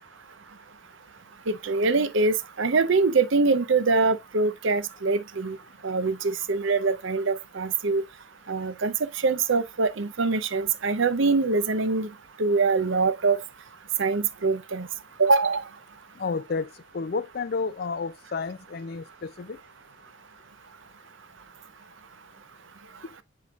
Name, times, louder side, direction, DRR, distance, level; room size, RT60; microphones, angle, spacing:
voice 1, 1.5-5.6 5.8-8.0 8.5-12.1 12.4-13.4 14.0-14.9 15.2-15.6, right 4 dB, 65° right, 0.7 m, -24 dB
voice 2, 16.2-16.7 16.9-19.6, left 4 dB, 50° left, 0.4 m, -31 dB
7.6 x 5.5 x 2.4 m
head